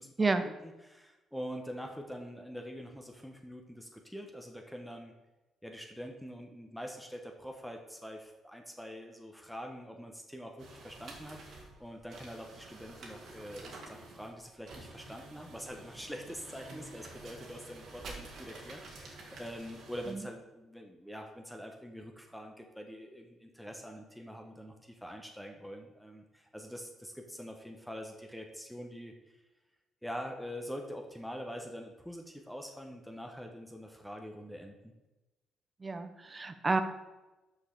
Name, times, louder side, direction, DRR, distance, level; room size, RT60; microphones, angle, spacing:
voice 1, 0.0-5.2 5.6-29.4 30.0-34.9, equal, ahead, 2 dB, 1.0 m, -45 dB
sound 1, 10.6-20.1, right 2 dB, 70° right, 2.1 m, -49 dB
voice 2, 35.8-36.8, right 3 dB, 25° right, 9 dB, 0.9 m, -30 dB
6.3 x 5.5 x 6.7 m, 1.1 s
cardioid pair, 90°, 0 cm